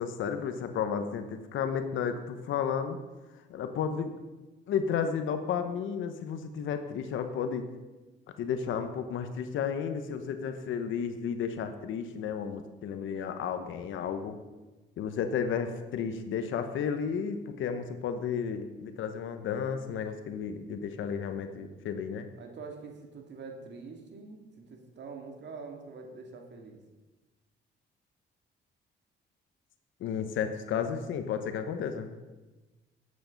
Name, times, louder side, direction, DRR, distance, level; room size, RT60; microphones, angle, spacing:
voice 1, 0.0-3.0 3.5-4.1 4.7-7.7 8.4-14.4 15.0-22.3 30.0-32.1, left 7 dB, 80° left, 8 dB, 1.0 m, -32 dB
voice 2, 22.4-26.8, right 4 dB, 60° right, 3 dB, 2.2 m, -45 dB
11.5 x 8.7 x 5.3 m, 1.2 s
cardioid pair, 90°, 20 cm